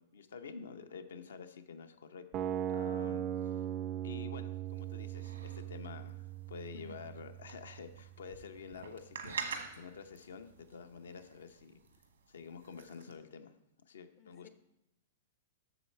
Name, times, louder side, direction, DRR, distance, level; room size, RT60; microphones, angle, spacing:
voice 1, 0.0-3.6 4.0-11.8 12.3-13.5 13.9-14.5, left 5 dB, 80° left, 9 dB, 0.7 m, -49 dB
sound 1, 2.3-8.3, right 11 dB, 35° right, 0.3 m, -39 dB
sound 2, 4.7-13.1, right 6 dB, 90° right, 1.2 m, -48 dB
voice 2, 6.7-7.1 14.2-14.5, left 5 dB, 40° left, 10 dB, 0.5 m, -54 dB
8.0 x 6.5 x 4.3 m, 0.90 s
hypercardioid pair, 115°, 0 cm